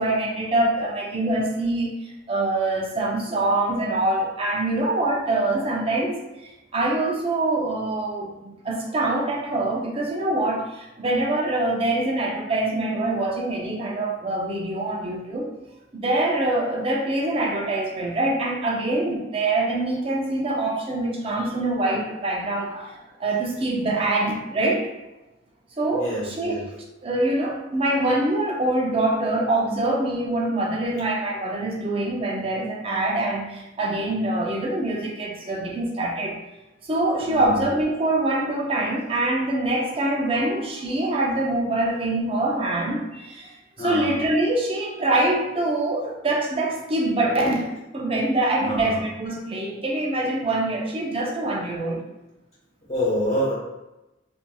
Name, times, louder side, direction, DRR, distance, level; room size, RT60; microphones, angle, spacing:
voice 1, 0.0-6.2 6.7-15.5 16.0-24.9 25.8-26.6 27.0-36.4 36.8-47.7 47.9-52.0, right 2 dB, 30° right, -2 dB, 0.5 m, -24 dB
voice 2, 25.9-26.6 37.2-37.6 43.8-44.1 48.6-49.0 52.9-53.5, equal, 35° left, -8 dB, 1.3 m, -27 dB
2.9 x 2.6 x 2.2 m, 0.98 s
head